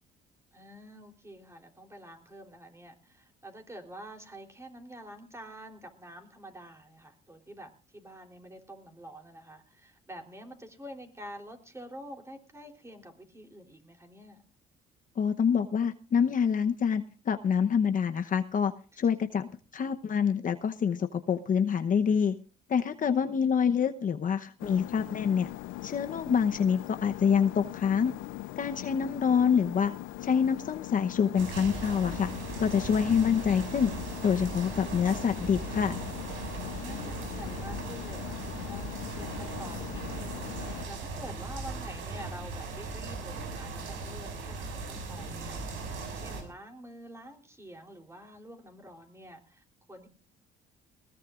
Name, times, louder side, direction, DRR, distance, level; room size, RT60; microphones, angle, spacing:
voice 1, 0.5-14.4 23.1-23.5 36.6-50.1, right 1 dB, 15° right, 3 dB, 3.5 m, -48 dB
voice 2, 15.2-19.5 19.7-22.3 22.7-25.5 25.8-28.1 28.6-29.9 30.2-32.3 32.6-33.9 34.2-36.0, left 7 dB, 45° left, 7 dB, 0.9 m, -26 dB
sound 1, 24.6-40.9, left 17 dB, 85° left, 0.6 m, -41 dB
sound 2, 31.4-46.4, right 3 dB, 80° right, 6.1 m, -38 dB
20.5 x 17.5 x 2.5 m, 0.38 s
cardioid pair, 90°, 20 cm